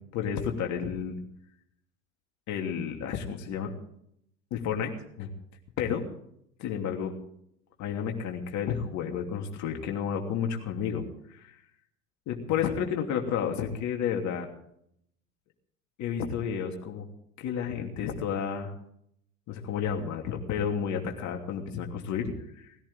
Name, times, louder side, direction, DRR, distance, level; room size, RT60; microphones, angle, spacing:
voice 1, 0.1-1.2 2.5-3.7 4.5-4.9 5.2-5.3 5.8-6.0 6.6-7.1 7.8-11.6 12.3-14.5 16.0-17.1 17.4-18.7 19.5-22.8, left 7 dB, 40° left, 2 dB, 2.9 m, -31 dB
20.0 x 16.5 x 3.7 m, 0.71 s
figure-of-eight pair, 75°, 42 cm